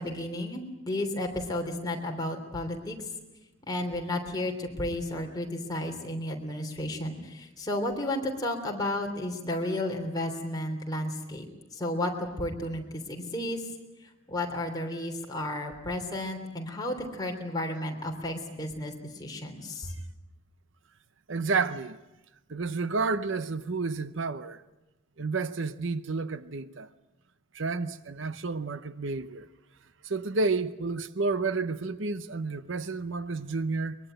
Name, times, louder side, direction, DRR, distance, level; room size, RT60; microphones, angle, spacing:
voice 1, 0.0-3.0 3.7-11.5 11.7-13.7 14.3-19.9, left 1 dB, 20° left, 3.3 m, -33 dB
voice 2, 21.3-22.0 22.5-24.6 25.2-26.9 27.5-29.5 30.0-34.0, right 4 dB, 70° right, 0.8 m, -30 dB
23.0 x 22.5 x 9.1 m
head